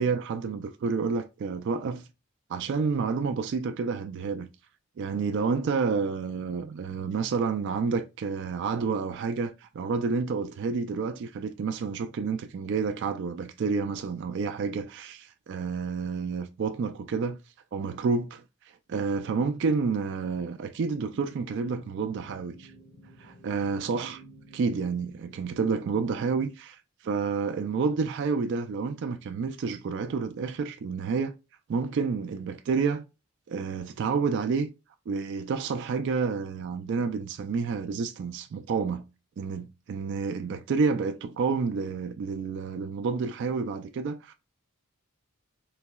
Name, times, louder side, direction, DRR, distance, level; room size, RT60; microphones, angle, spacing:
voice 1, 0.0-2.1 2.5-4.5 5.0-17.4 17.7-18.4 18.9-22.7 23.2-24.2 24.5-31.3 31.7-33.0 33.5-34.7 35.1-39.0 39.4-44.3, right 5 dB, 55° right, 0.3 m, -29 dB
sound 1, 21.0-26.5, equal, 85° left, 1.6 m, -52 dB
3.9 x 2.7 x 2.2 m
head